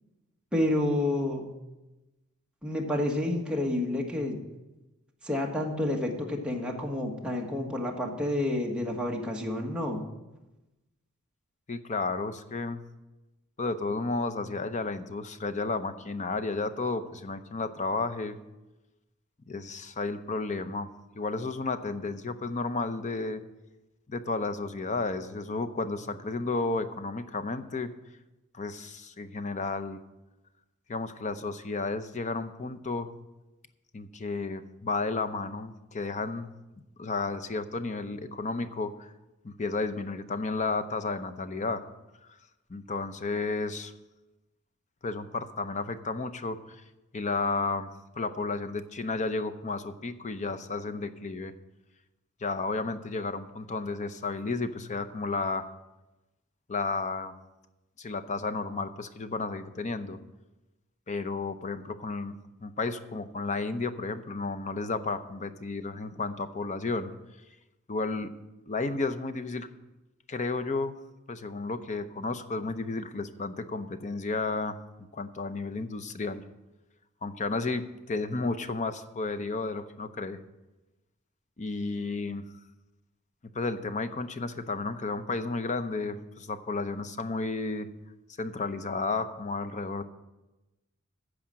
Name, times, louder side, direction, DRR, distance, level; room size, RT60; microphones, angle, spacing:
voice 1, 0.5-1.5 2.6-4.4 5.2-10.0, left 1 dB, 5° right, -1 dB, 1.5 m, -29 dB
voice 2, 11.7-12.8 13.6-18.4 19.5-20.9 21.1-23.4 24.1-27.9 28.5-30.0 30.9-33.1 33.9-39.1 39.4-41.8 42.7-43.9 45.0-46.8 47.1-47.9 48.2-51.5 52.4-55.7 56.7-57.3 58.0-60.2 61.1-62.3 62.6-67.1 67.9-68.3 68.7-69.7 70.3-71.0 71.3-74.8 75.1-76.4 77.2-80.4 81.6-82.4 83.5-87.9 88.4-90.0, left 3 dB, 35° left, 10 dB, 0.7 m, -32 dB
14.5 x 5.0 x 7.4 m, 1.0 s
head